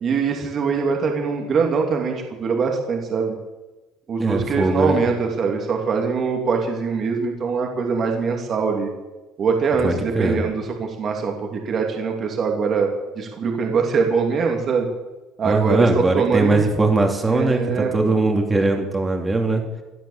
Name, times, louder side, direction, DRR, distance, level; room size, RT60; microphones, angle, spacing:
voice 1, 0.0-3.3 4.1-8.9 9.4-12.9 13.2-14.9 15.4-16.7 17.3-18.1, right 5 dB, 35° right, 2 dB, 2.7 m, -23 dB
voice 2, 4.2-5.0 9.8-10.4 15.4-19.6, right 2 dB, 15° right, 3 dB, 2.8 m, -20 dB
17.0 x 11.5 x 7.4 m, 1.1 s
cardioid pair, 140°, 0 cm